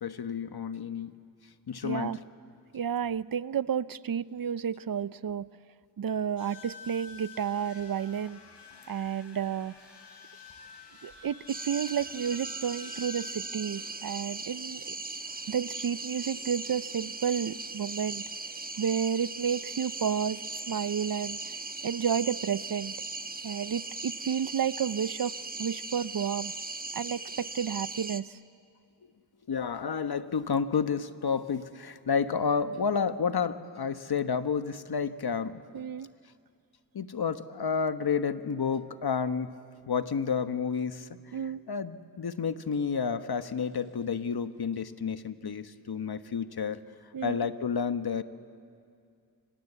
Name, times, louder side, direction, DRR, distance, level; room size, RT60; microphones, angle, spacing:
voice 1, 0.0-1.1 1.7-2.2 29.5-35.6 36.9-39.5 39.9-41.4 41.7-46.8 47.2-48.2, left 6 dB, 65° left, 10 dB, 1.3 m, -30 dB
voice 2, 1.8-2.2 2.7-5.5 6.0-8.4 8.9-9.7 11.0-15.0 15.5-18.2 18.8-21.4 21.8-22.9 23.4-26.5 26.9-28.4 35.7-36.1 41.3-41.6 47.1-47.5, right 8 dB, 55° right, 17 dB, 0.7 m, -31 dB
sound 1, 6.4-13.3, left 5 dB, 90° left, 6.0 m, -49 dB
sound 2, 11.5-28.2, right 3 dB, 20° right, 1.2 m, -39 dB
28.5 x 25.5 x 8.2 m, 2.3 s
cardioid pair, 45°, 41 cm